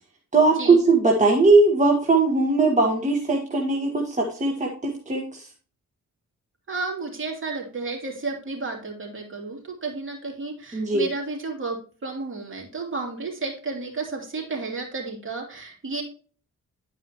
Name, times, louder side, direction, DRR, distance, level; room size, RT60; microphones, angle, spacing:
voice 1, 0.3-5.5 10.7-11.1, right 3 dB, 25° right, -1 dB, 1.5 m, -20 dB
voice 2, 6.7-16.0, right 3 dB, 40° right, -1 dB, 2.9 m, -32 dB
10.5 x 4.8 x 3.0 m, 0.41 s
cardioid pair, 70°, 32 cm